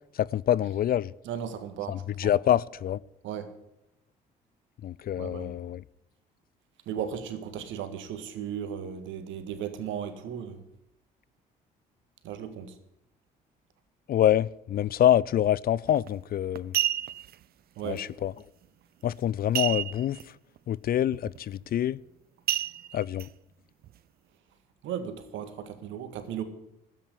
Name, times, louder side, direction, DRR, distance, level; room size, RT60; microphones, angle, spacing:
voice 1, 0.1-1.1 1.9-3.0 4.8-5.8 14.1-16.7 17.8-18.3 19.0-20.4 20.7-22.0 22.9-23.3, left 11 dB, 45° left, 0.5 m, -26 dB
voice 2, 1.3-2.3 3.2-3.5 5.2-5.5 6.9-10.6 12.2-12.8 17.8-18.0 24.8-26.4, right 8 dB, 65° right, 1.9 m, -36 dB
sound 1, 15.9-16.1 16.6-17.3 19.5-20.2 20.6-20.7 21.1-21.4 22.5-23.3 23.8-23.9, right 11 dB, 45° right, 0.5 m, -29 dB
12.5 x 9.1 x 10.0 m
hypercardioid pair, 50°, 21 cm